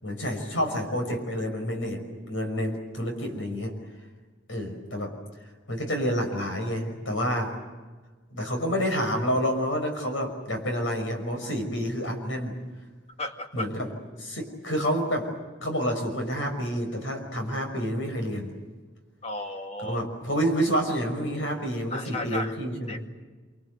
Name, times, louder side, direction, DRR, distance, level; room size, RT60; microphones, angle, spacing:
voice 1, 0.0-3.8 4.5-5.2 5.7-7.6 8.3-12.6 13.5-13.9 14.1-15.3 15.6-18.5 19.8-23.1, equal, 90° left, 4 dB, 5.9 m, -29 dB
voice 2, 13.2-13.7 19.2-20.0 21.9-22.6 22.9-23.1, left 1 dB, 35° left, 5 dB, 2.2 m, -34 dB
27.0 x 25.0 x 8.0 m, 1.3 s
head